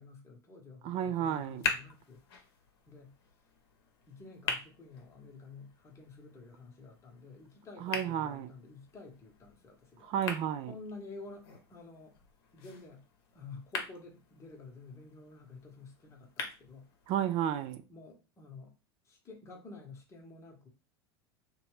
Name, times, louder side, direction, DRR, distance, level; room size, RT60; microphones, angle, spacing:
voice 1, 0.0-2.2 2.9-3.1 4.1-10.1 10.7-12.1 12.5-13.1 13.3-16.9 17.9-18.7 19.0-20.7, left 3 dB, 20° left, 0.9 m, -50 dB
voice 2, 0.8-1.6 7.8-8.5 10.0-10.7 17.1-17.8, right 10 dB, 45° right, 0.4 m, -32 dB
sound 1, 1.2-17.2, left 5 dB, 65° left, 0.8 m, -43 dB
2.8 x 2.2 x 3.0 m
hypercardioid pair, 85°, 13 cm